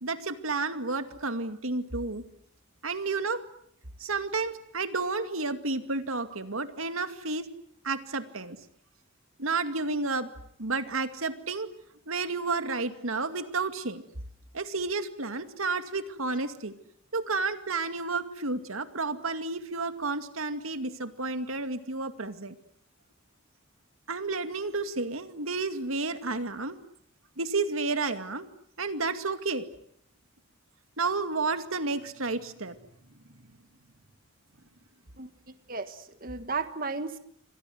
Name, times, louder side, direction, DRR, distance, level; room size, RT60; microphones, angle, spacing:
voice 1, 0.0-2.2 2.8-3.4 4.0-7.5 7.8-8.6 9.4-10.3 10.6-11.7 12.1-14.0 14.5-16.7 17.1-22.5 24.1-26.8 27.4-28.5 28.8-29.7 31.0-32.8, right 3 dB, 90° right, 9 dB, 2.3 m, -31 dB
voice 2, 35.2-37.2, right 4 dB, 45° right, 10 dB, 1.5 m, -35 dB
28.5 x 25.0 x 7.9 m, 0.68 s
head